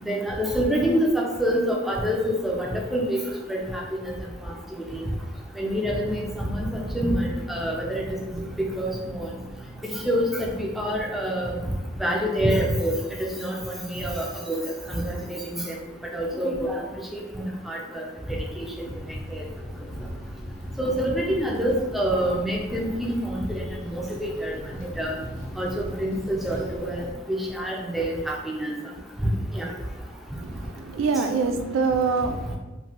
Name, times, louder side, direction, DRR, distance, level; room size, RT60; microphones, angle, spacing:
voice 1, 0.0-3.2 3.5-3.8 4.4-4.5 4.9-5.0 5.6-6.7 6.9-9.3 10.0-11.6 12.0-14.6 14.9-15.7 16.1-16.8 17.1-17.2 17.7-18.0 18.3-18.7 19.4-19.5 20.8-23.6 23.9-24.5 25.0-25.2 25.6-25.7 26.0-28.7 29.5-29.7, equal, ahead, -3 dB, 0.3 m, -26 dB
sound 1, 5.8-11.7, right 1 dB, 55° right, 0.7 m, -40 dB
sound 2, 18.8-27.1, equal, 65° left, 0.6 m, -39 dB
voice 2, 30.4-32.6, right 4 dB, 90° right, 6 dB, 0.3 m, -25 dB
3.0 x 2.1 x 2.8 m, 1.1 s
head